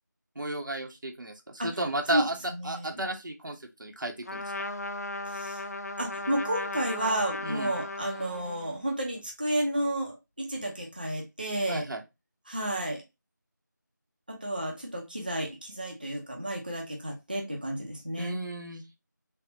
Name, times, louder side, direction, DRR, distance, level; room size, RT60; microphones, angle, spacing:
voice 1, 0.4-4.4 7.4-7.7 11.7-12.0 18.2-18.8, right 2 dB, 80° right, 0.7 m, -33 dB
voice 2, 2.5-2.9 5.3-5.6 6.0-11.8 12.5-13.0 14.3-18.4, right 1 dB, 25° right, 0.5 m, -31 dB
Trumpet, 4.2-8.8, left 2 dB, 55° left, 0.4 m, -36 dB
3.4 x 2.0 x 2.5 m
figure-of-eight pair, 175°, 10 cm